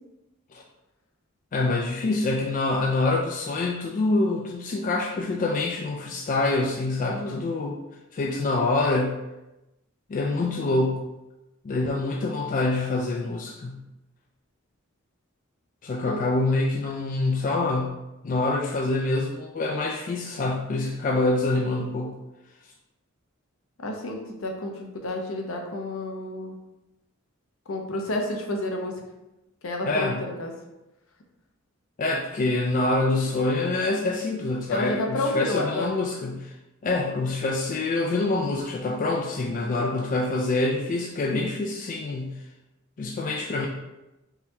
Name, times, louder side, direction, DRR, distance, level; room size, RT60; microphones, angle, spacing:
voice 1, 1.5-7.8 8.1-9.2 10.1-11.0 11.6-13.8 15.8-22.1 29.9-30.2 32.0-36.5 36.8-42.3 43.0-43.7, left 2 dB, 40° left, 0 dB, 0.3 m, -26 dB
voice 2, 7.1-7.4 16.0-16.2 23.8-26.6 27.7-28.9 29.6-30.5 34.7-36.0 39.6-39.8, left 1 dB, 70° left, 2 dB, 0.6 m, -30 dB
3.9 x 2.8 x 2.7 m, 0.98 s
head